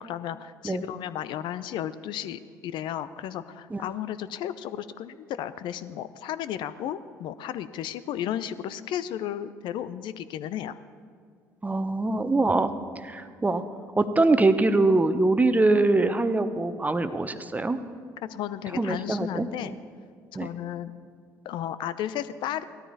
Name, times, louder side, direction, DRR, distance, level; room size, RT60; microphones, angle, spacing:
voice 1, 0.0-10.8 18.2-19.7 20.4-20.9 21.4-22.6, left 11 dB, 60° left, 14 dB, 0.6 m, -34 dB
voice 2, 11.6-12.7 13.0-13.6 14.0-17.8 18.8-19.8 20.3-20.5, right 2 dB, 15° right, 10 dB, 1.0 m, -23 dB
17.5 x 13.0 x 4.1 m, 2.2 s
hypercardioid pair, 55°, 9 cm